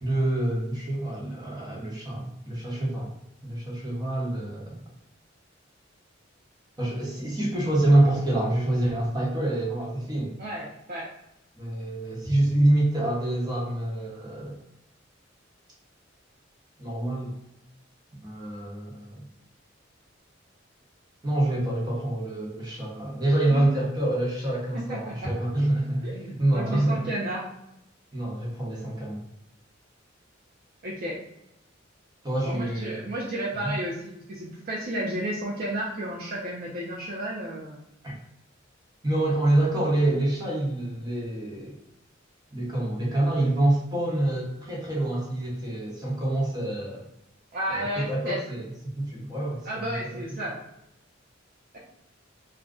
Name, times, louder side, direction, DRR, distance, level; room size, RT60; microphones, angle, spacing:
voice 1, 0.0-3.1 3.4-4.8 6.8-10.3 11.5-14.6 16.8-17.3 18.2-19.2 21.2-27.0 28.1-29.2 32.2-33.1 33.6-33.8 38.0-38.2 39.0-41.8 42.5-47.0 47.7-50.2, right 1 dB, 20° right, -4 dB, 0.9 m, -26 dB
voice 2, 10.4-11.1 23.5-23.7 24.9-25.3 26.0-26.2 26.5-27.4 30.8-31.2 32.4-37.8 47.5-48.4 49.6-50.6, right 1 dB, 50° right, -4 dB, 0.5 m, -32 dB
2.5 x 2.2 x 3.5 m, 0.82 s
head